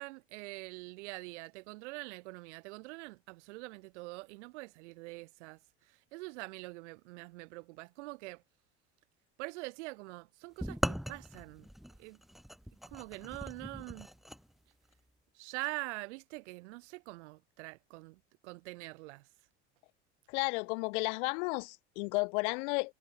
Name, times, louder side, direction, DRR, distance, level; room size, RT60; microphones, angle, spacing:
voice 1, 0.0-5.6 6.1-8.4 9.4-11.7 12.0-12.2 12.9-14.1 15.3-19.3, right 24 dB, 75° right, 3.2 m, -44 dB
sound 1, 10.6-14.4, equal, ahead, 0.7 m, -39 dB
voice 2, 20.3-22.9, left 31 dB, 75° left, 1.5 m, -33 dB
hypercardioid pair, 85°, 35 cm